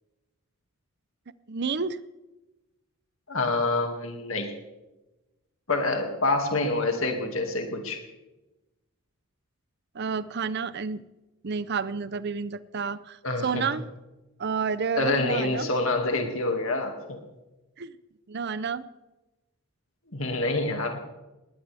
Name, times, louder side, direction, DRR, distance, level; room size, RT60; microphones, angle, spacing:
voice 1, 1.5-2.0 9.9-11.0 11.4-13.8 14.4-15.7 17.8-17.9 18.3-18.9, right 5 dB, 50° right, 16 dB, 0.6 m, -30 dB
voice 2, 3.3-4.5 5.7-8.0 13.2-13.7 14.9-17.2 20.1-21.0, left 2 dB, 65° left, 4 dB, 2.2 m, -27 dB
20.0 x 19.0 x 3.5 m, 1.0 s
head